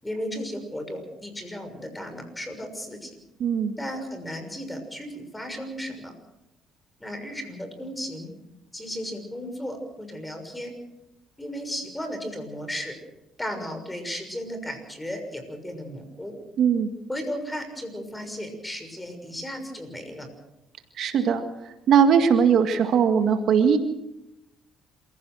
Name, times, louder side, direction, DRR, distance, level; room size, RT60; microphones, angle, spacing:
voice 1, 0.0-3.2 3.8-6.1 7.0-8.3 8.7-10.7 11.4-12.9 13.4-16.3 17.1-20.3, equal, 10° left, 7 dB, 6.4 m, -35 dB
voice 2, 3.4-3.7 16.6-16.9 21.0-23.8, right 7 dB, 65° right, 7 dB, 1.9 m, -20 dB
27.0 x 16.0 x 6.4 m, 0.90 s
supercardioid pair, 75°, 0 cm